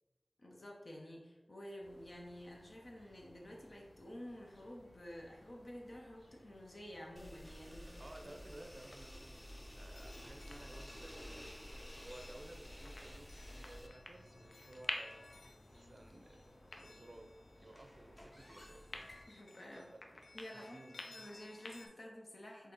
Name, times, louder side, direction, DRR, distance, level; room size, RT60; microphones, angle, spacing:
voice 1, 0.4-8.4 19.3-19.9 20.3-22.7, left 1 dB, 65° left, -1 dB, 0.9 m, -51 dB
sound 1, 1.8-19.3, left 1 dB, 40° left, 1.1 m, -63 dB
sound 2, 7.2-13.9, equal, 15° left, 0.4 m, -51 dB
voice 2, 8.0-9.4 9.7-11.6 12.0-15.2 15.7-17.3 17.6-19.2 19.7-21.3, right 1 dB, 55° right, 4 dB, 0.5 m, -56 dB
sound 3, 9.3-21.9, left 2 dB, 85° left, 0.4 m, -51 dB
4.3 x 2.8 x 3.7 m, 1.1 s
wide cardioid pair, 50°, 0 cm